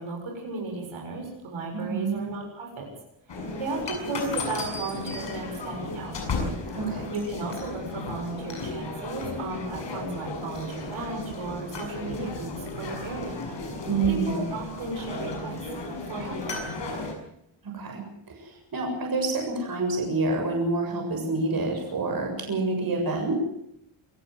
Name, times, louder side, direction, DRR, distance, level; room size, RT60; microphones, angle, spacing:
voice 1, 0.0-2.9 3.3-6.2 7.1-12.5 12.8-13.4 14.1-15.6 16.1-16.6, right 3 dB, 70° right, 1 dB, 7.3 m, -34 dB
voice 2, 1.7-2.2 6.7-7.1 13.9-14.4 17.6-23.4, right 3 dB, 45° right, 2 dB, 7.4 m, -28 dB
sound 1, 3.3-17.1, left 3 dB, 60° left, 7.0 m, -34 dB
27.0 x 14.0 x 7.8 m, 0.77 s
cardioid pair, 115°, 49 cm